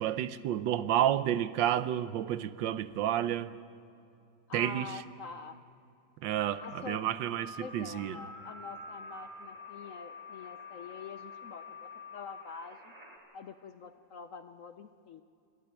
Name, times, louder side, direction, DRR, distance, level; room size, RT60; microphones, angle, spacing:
voice 1, 0.0-3.5 4.5-4.9 6.2-8.1, right 11 dB, 85° right, 1.4 m, -30 dB
voice 2, 4.5-5.6 6.6-12.9 13.3-15.2, left 5 dB, 60° left, 0.9 m, -46 dB
sound 1, 6.3-13.2, left 2 dB, 20° right, 3.3 m, -47 dB
26.5 x 12.0 x 9.2 m
omnidirectional pair, 2.0 m